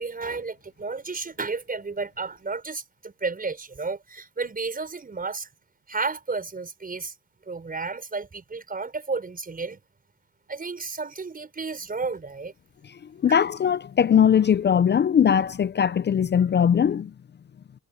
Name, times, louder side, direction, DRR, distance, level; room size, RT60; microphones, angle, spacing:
voice 1, 0.0-5.5 5.9-7.1 7.5-9.8 10.5-12.5 13.3-13.4, right 4 dB, 30° right, 5.8 m, -32 dB
voice 2, 13.2-17.1, left 8 dB, 35° left, 0.5 m, -20 dB
cardioid pair, 90°, 30 cm